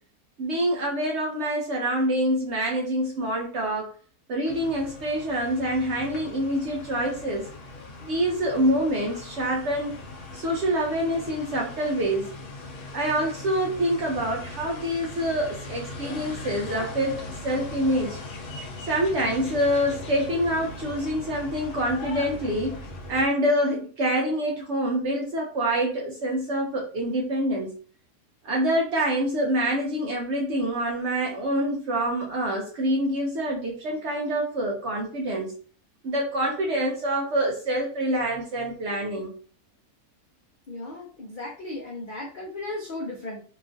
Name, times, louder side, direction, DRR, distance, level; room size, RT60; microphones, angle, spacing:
voice 1, 0.4-4.0 4.3-7.5 8.1-10.0 10.3-12.3 12.9-18.2 18.9-22.8 23.1-27.8 28.4-35.5 36.0-39.3, right 1 dB, 65° right, -1 dB, 0.7 m, -26 dB
sound 1, 4.5-23.3, left 2 dB, 85° left, 1.2 m, -39 dB
voice 2, 40.7-43.4, left 2 dB, 65° left, -2 dB, 0.5 m, -35 dB
2.9 x 2.4 x 2.4 m, 0.41 s
omnidirectional pair, 1.6 m